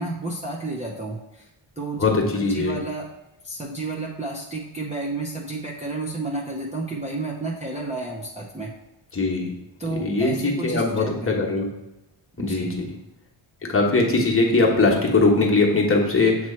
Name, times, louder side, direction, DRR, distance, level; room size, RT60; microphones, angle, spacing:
voice 1, 0.0-1.5 1.8-2.0 2.3-3.1 3.4-8.7 9.8-11.3 12.4-12.8, right 2 dB, 15° right, -4 dB, 0.5 m, -31 dB
voice 2, 2.0-2.8 9.1-9.5 10.0-11.7 12.4-12.9 13.7-16.4, left 3 dB, 25° left, -1 dB, 1.0 m, -20 dB
7.3 x 3.0 x 4.3 m, 0.93 s
wide cardioid pair, 130°, 49 cm